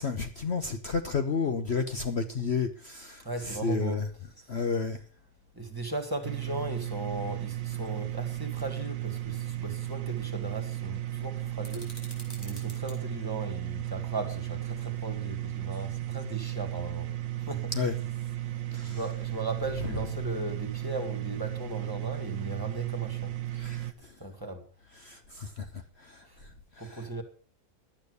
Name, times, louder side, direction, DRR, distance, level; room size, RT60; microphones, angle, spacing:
voice 1, 0.0-3.2 3.6-4.0 4.5-5.0 17.8-17.9 18.7-19.0 23.6-23.8 25.4-25.5, left 5 dB, 50° left, 1.1 m, -30 dB
voice 2, 3.2-4.0 5.6-11.9 12.4-17.1 17.5-17.7 18.8-23.3 24.2-24.6 26.8-27.2, right 2 dB, 15° right, 2.1 m, -37 dB
sound 1, 6.2-23.9, right 14 dB, 60° right, 1.2 m, -35 dB
sound 2, 11.6-13.0, equal, 15° left, 4.5 m, -47 dB
12.0 x 8.9 x 6.6 m
omnidirectional pair, 1.6 m